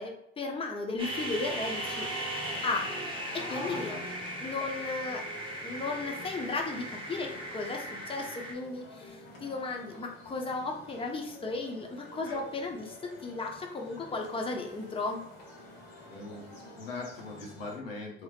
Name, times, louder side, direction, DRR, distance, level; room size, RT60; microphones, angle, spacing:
voice 1, 0.0-2.1 2.6-2.9 3.3-3.9 4.4-5.3 5.6-15.2, left 3 dB, 20° left, 1 dB, 0.7 m, -35 dB
sound 1, 1.0-8.5, right 1 dB, 20° right, 1.0 m, -37 dB
sound 2, 1.2-17.8, left 2 dB, 65° left, 1.3 m, -48 dB
voice 2, 16.1-18.2, left 3 dB, 80° left, -1 dB, 0.8 m, -41 dB
2.9 x 2.9 x 2.4 m, 0.73 s
hypercardioid pair, 60°, 29 cm